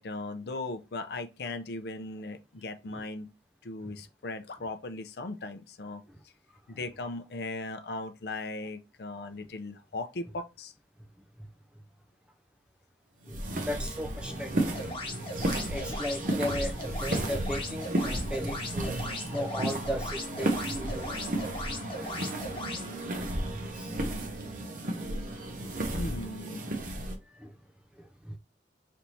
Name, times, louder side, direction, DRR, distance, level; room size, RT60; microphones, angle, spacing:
voice 1, 0.0-3.3 3.6-6.0 6.7-10.7 25.9-26.9, left 2 dB, 60° left, 0.5 m, -38 dB
sound 1, 13.2-27.2, right 1 dB, 45° right, 0.7 m, -33 dB
voice 2, 13.7-14.7 15.7-21.4 21.7-22.1 23.2-23.3 23.7-23.9 24.4-24.5 24.8-25.0 25.6-26.1 27.3-27.5 28.0-28.4, equal, 5° right, 0.3 m, -37 dB
sound 2, 14.7-22.9, left 2 dB, 30° left, 1.1 m, -39 dB
3.4 x 2.7 x 4.2 m
head